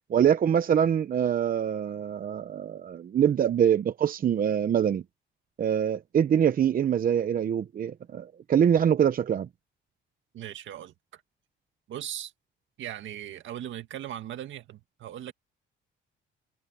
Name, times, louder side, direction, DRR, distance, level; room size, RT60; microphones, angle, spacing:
voice 1, 0.1-5.0 5.6-9.5, right 9 dB, 45° right, 0.8 m, -24 dB
voice 2, 10.3-11.2 11.9-12.3 12.8-15.3, right 11 dB, 70° right, 2.0 m, -39 dB
cardioid pair, 115°, 20 cm